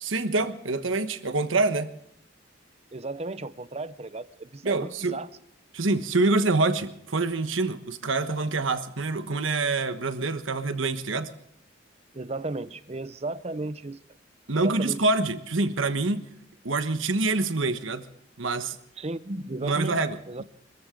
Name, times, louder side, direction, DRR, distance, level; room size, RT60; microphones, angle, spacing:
voice 1, 0.0-1.9 4.6-5.2 5.7-11.3 14.5-16.3 16.6-18.0 18.4-18.8 19.6-20.2, right 3 dB, 75° right, 9 dB, 1.2 m, -26 dB
voice 2, 2.9-5.3 12.1-14.0 14.6-15.0 19.0-20.4, right 2 dB, 30° right, 14 dB, 0.6 m, -34 dB
25.0 x 14.5 x 3.8 m, 0.74 s
head